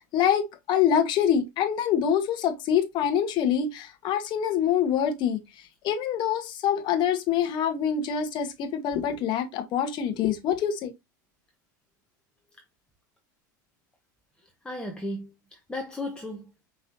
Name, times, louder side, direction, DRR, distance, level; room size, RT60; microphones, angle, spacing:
voice 1, 0.1-5.4 5.8-10.9, left 8 dB, 50° left, 1.0 m, -25 dB
voice 2, 14.4-16.7, left 1 dB, 10° left, 0.8 m, -36 dB
5.3 x 3.0 x 2.6 m
hypercardioid pair, 95°, 10 cm